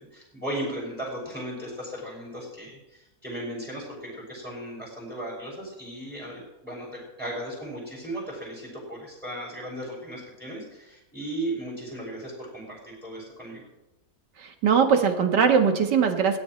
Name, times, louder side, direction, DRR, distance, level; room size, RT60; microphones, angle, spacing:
voice 1, 0.0-13.6, right 1 dB, ahead, -4 dB, 6.6 m, -36 dB
voice 2, 14.4-16.4, right 6 dB, 75° right, 5 dB, 2.2 m, -21 dB
22.5 x 18.0 x 3.3 m, 1.0 s
omnidirectional pair, 1.9 m